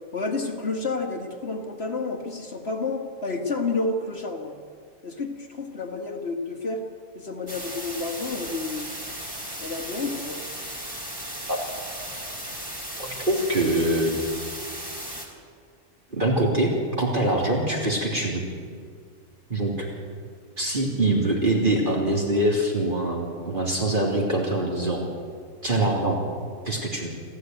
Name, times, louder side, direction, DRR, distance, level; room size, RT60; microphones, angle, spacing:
voice 1, 0.1-4.6 5.0-6.8 7.1-8.9 9.6-10.4, left 3 dB, 50° left, 3 dB, 2.0 m, -30 dB
sound 1, 7.5-15.3, equal, 15° right, 3.6 m, -36 dB
voice 2, 13.0-14.2 16.1-18.4 19.5-19.9 20.6-25.0 25.6-26.2 26.7-27.1, right 1 dB, 35° right, -1 dB, 3.3 m, -24 dB
27.5 x 14.5 x 9.3 m, 2.1 s
omnidirectional pair, 1.4 m